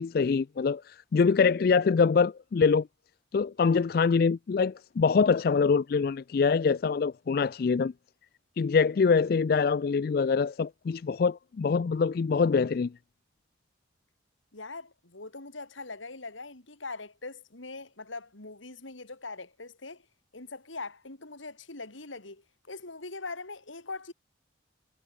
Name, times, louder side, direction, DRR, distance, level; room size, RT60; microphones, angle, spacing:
voice 1, 0.0-2.9 3.3-7.9 8.6-12.9, left 5 dB, 50° left, 0.3 m, -24 dB
voice 2, 14.5-20.0 20.3-24.1, left 3 dB, 85° left, 3.6 m, -42 dB
head